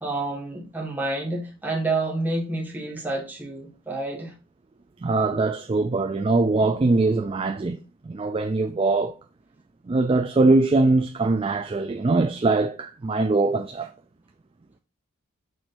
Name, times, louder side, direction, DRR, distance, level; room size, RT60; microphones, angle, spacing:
voice 1, 0.0-4.3, right 2 dB, 10° right, 1.6 m, -29 dB
voice 2, 5.0-7.8 8.0-9.1 9.9-13.9, right 3 dB, 25° right, 0.3 m, -22 dB
6.3 x 6.0 x 2.6 m
head